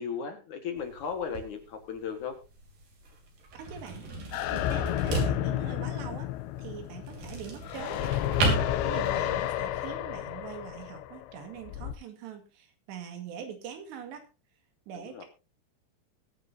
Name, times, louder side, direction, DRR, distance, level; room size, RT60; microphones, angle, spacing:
voice 1, 0.0-2.4 14.9-15.2, left 6 dB, 55° left, 5 dB, 2.6 m, -36 dB
sound 1, 0.8-9.5, right 3 dB, 60° right, 4.8 m, -35 dB
voice 2, 3.5-6.3 6.6-8.5 8.8-14.3 14.9-15.3, right 8 dB, 90° right, 6 dB, 4.2 m, -43 dB
sound 2, 4.3-11.9, left 12 dB, 90° left, 2.9 m, -31 dB
21.5 x 9.0 x 2.8 m, 0.30 s
omnidirectional pair, 4.8 m